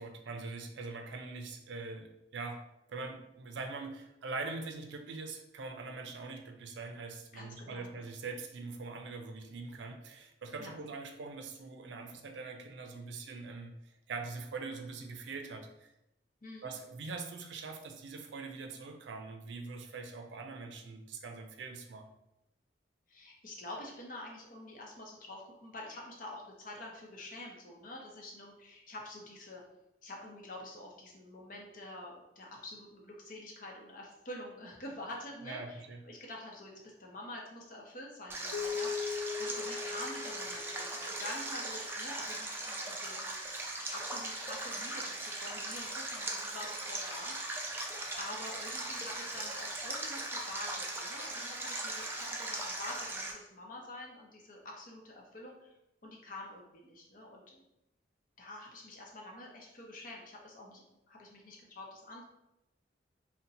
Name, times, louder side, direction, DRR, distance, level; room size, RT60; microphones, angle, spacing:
voice 1, 0.0-2.6 2.9-15.9 16.6-22.1 35.4-36.0, right 3 dB, 75° right, 5 dB, 0.4 m, -43 dB
voice 2, 7.3-7.9 10.6-10.7 16.4-16.7 23.1-29.6 30.0-38.9 39.4-43.3 43.9-47.6 48.2-55.7 56.0-57.6 58.4-62.2, left 1 dB, 50° left, -1 dB, 0.7 m, -47 dB
Stream, 38.3-53.3, right 2 dB, 10° right, 0.4 m, -39 dB
Keyboard (musical), 38.5-41.5, left 6 dB, 90° left, 0.4 m, -39 dB
2.7 x 2.1 x 3.9 m, 0.87 s
head